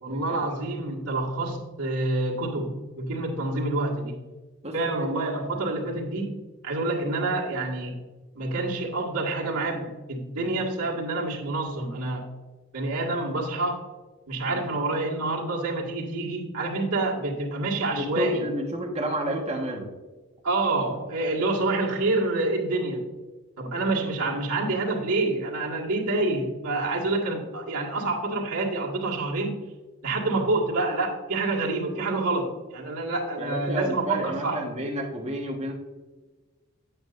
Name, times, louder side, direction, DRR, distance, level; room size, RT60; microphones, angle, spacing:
voice 1, 0.0-4.2 4.7-8.0 8.4-12.3 12.7-13.8 14.3-18.4 20.4-23.1 23.6-29.6 30.0-34.6, right 2 dB, 90° right, -4 dB, 1.9 m, -27 dB
voice 2, 4.6-5.0 14.4-14.7 17.9-19.9 30.0-30.2 33.4-35.7, right 1 dB, 30° right, 0 dB, 1.4 m, -31 dB
9.1 x 8.8 x 2.6 m, 1.3 s
head